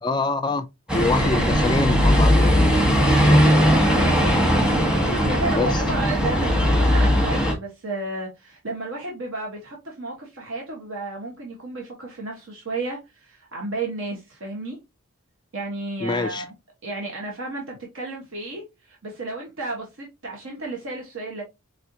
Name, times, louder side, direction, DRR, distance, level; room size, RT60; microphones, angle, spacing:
voice 1, 0.0-0.7 0.9-2.8 3.2-3.5 5.5-5.7 16.0-16.5, left 3 dB, 20° left, 0.3 m, -25 dB
sound 1, 0.9-7.5, equal, 5° right, 1.1 m, -18 dB
voice 2, 4.0-4.4 5.1-14.8 15.5-16.5 16.8-21.4, right 2 dB, 65° right, 1.2 m, -32 dB
4.5 x 3.4 x 2.7 m
head